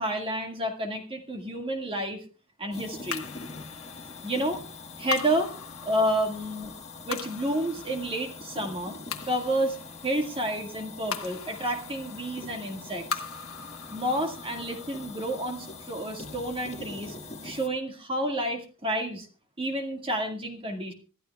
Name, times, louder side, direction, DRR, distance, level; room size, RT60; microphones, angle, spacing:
voice 1, 0.0-2.2 2.6-3.2 4.2-4.6 5.0-5.5 5.8-6.7 7.0-9.0 9.3-9.8 10.0-13.2 13.9-17.2 17.4-19.3 19.6-20.9, right 1 dB, 25° right, 3 dB, 1.9 m, -30 dB
sound 1, 2.7-17.7, left 3 dB, 30° left, 1.6 m, -43 dB
sound 2, 3.1-17.6, left 6 dB, 70° left, 1.4 m, -42 dB
25.5 x 13.5 x 2.3 m, 0.35 s
head